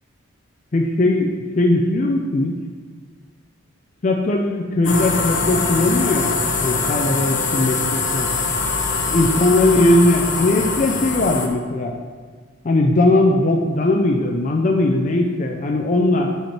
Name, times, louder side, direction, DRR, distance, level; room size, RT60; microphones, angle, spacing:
voice 1, 0.7-2.5 4.0-6.3 6.6-8.3 9.1-12.0 12.6-16.4, left 2 dB, 35° left, 1 dB, 0.4 m, -19 dB
sound 1, 4.8-11.5, left 4 dB, 55° left, 0.9 m, -23 dB
5.6 x 4.4 x 5.8 m, 1.5 s
head